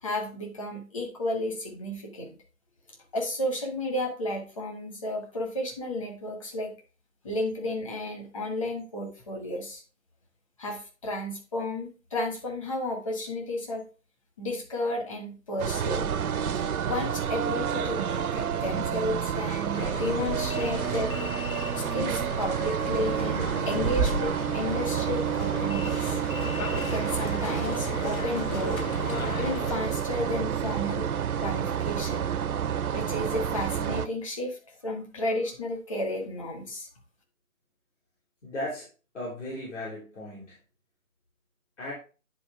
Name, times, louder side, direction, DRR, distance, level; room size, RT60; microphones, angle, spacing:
voice 1, 0.0-2.3 3.1-6.7 7.2-9.8 10.6-13.8 14.4-16.1 16.5-21.1 21.7-26.2 26.9-28.9 29.4-31.1 31.4-32.3 32.9-36.9, left 1 dB, 25° left, 1 dB, 1.2 m, -32 dB
sound 1, 15.6-34.1, right 8 dB, 90° right, 0.6 m, -29 dB
sound 2, 16.1-25.5, right 5 dB, ahead, 0.4 m, -39 dB
sound 3, 19.7-29.7, left 5 dB, 80° left, 0.9 m, -37 dB
voice 2, 38.4-38.9 39.1-40.6 41.8-41.9, left 1 dB, 55° left, -6 dB, 3.4 m, -36 dB
9.7 x 3.9 x 3.5 m, 0.35 s
figure-of-eight pair, 165°, 42 cm